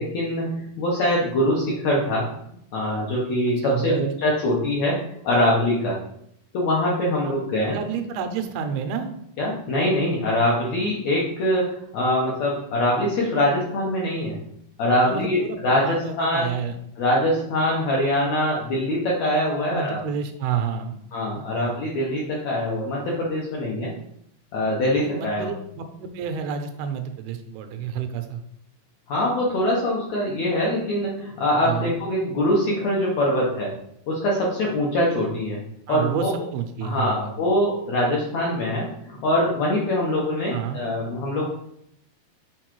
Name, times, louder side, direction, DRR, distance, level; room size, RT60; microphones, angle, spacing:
voice 1, 0.0-2.3 2.7-6.0 6.5-7.8 9.4-14.4 14.8-16.5 17.0-20.0 21.1-23.9 24.5-25.6 29.1-33.7 34.1-35.6 35.9-36.3 36.8-41.5, left 1 dB, 75° left, -4 dB, 1.6 m, -23 dB
voice 2, 3.6-4.1 7.2-7.3 7.7-9.1 15.0-16.8 19.7-21.0 21.3-21.7 25.0-28.4 31.6-31.9 35.9-36.3 36.5-37.3 40.5-40.8, right 7 dB, 85° right, 6 dB, 2.6 m, -29 dB
7.1 x 4.5 x 3.0 m, 0.74 s
omnidirectional pair, 4.4 m